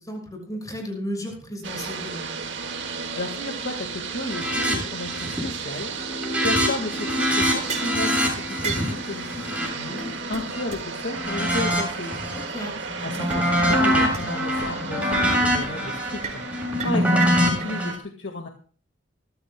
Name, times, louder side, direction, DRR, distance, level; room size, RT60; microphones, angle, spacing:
voice 1, 0.0-2.3 12.3-12.7, equal, 20° left, 1 dB, 6.4 m, -34 dB
sound 1, 1.6-18.0, right 4 dB, 65° right, 1.9 m, -34 dB
voice 2, 2.9-12.2 13.0-18.5, left 2 dB, 70° left, 3 dB, 1.8 m, -33 dB
sound 2, 4.3-4.8 5.0-5.5 5.8-10.6 11.1-12.4 12.8-17.9, equal, 5° right, 7.2 m, -24 dB
sound 3, 7.7-8.0 8.6-8.9 9.7-9.8 10.0-10.1 10.3-10.4 10.7-10.8 11.2-11.3 11.7-11.8 13.1-13.4 13.7-13.8 14.1-14.2 14.6-14.7 15.1-15.3 15.6-15.7 16.2-16.4 16.8-17.7, right 5 dB, 40° right, 4.8 m, -33 dB
24.5 x 14.5 x 2.2 m, 0.42 s
head